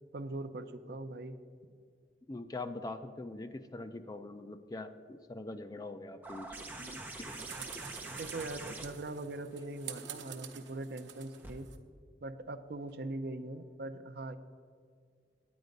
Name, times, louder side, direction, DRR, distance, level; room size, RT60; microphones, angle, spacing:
voice 1, 0.1-1.4 8.1-11.7 12.2-14.4, right 2 dB, 55° right, 10 dB, 0.5 m, -41 dB
voice 2, 2.3-6.6 7.2-7.4, left 2 dB, 20° left, 9 dB, 0.4 m, -43 dB
sound 1, 6.2-11.5 12.9-13.0, right 2 dB, 10° right, 0.7 m, -46 dB
sound 2, 6.8-11.8, right 8 dB, 85° right, 0.8 m, -48 dB
9.5 x 9.0 x 5.2 m, 2.1 s
head